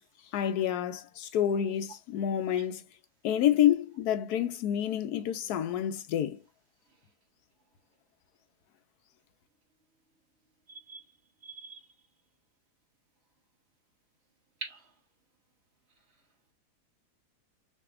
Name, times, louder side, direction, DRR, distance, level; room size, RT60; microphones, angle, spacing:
voice 1, 0.3-2.8 3.2-6.4, left 10 dB, 75° left, 1.1 m, -28 dB
voice 2, 10.7-11.0 11.4-11.8 14.6-14.8, right 4 dB, 45° right, 1.3 m, -42 dB
6.0 x 2.8 x 2.4 m
omnidirectional pair, 1.7 m